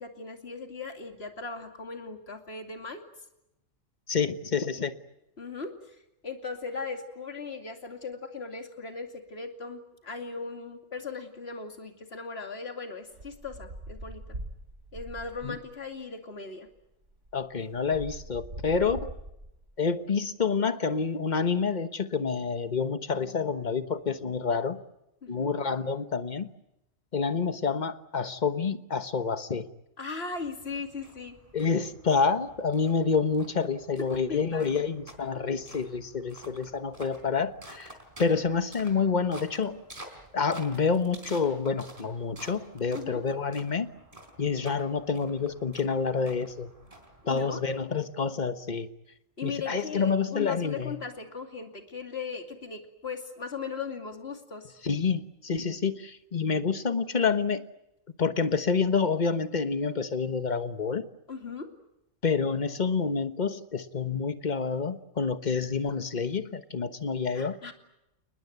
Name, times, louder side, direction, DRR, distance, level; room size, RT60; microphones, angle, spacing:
voice 1, 0.0-3.0 4.8-4.9 5.4-6.0 6.2-14.2 14.9-16.7 25.2-25.5 30.0-31.4 34.3-34.7 42.9-43.2 47.3-47.6 49.4-54.7 61.3-61.7 67.3-67.7, left 4 dB, 55° left, 5 dB, 2.9 m, -38 dB
voice 2, 4.1-4.9 15.4-15.6 17.3-19.1 19.8-24.8 25.3-26.5 27.1-29.7 31.5-37.9 38.2-39.8 40.3-43.9 44.4-46.7 47.3-48.9 49.4-51.0 54.8-57.6 58.2-61.0 62.2-67.6, left 5 dB, 35° left, 11 dB, 1.3 m, -28 dB
sound 1, 13.1-15.7 16.7-16.8 17.0-19.7, right 1 dB, 65° right, 4.6 m, -42 dB
sound 2, 30.3-48.1, right 1 dB, 25° right, 4.1 m, -51 dB
29.5 x 20.0 x 9.4 m, 0.89 s
omnidirectional pair, 1.3 m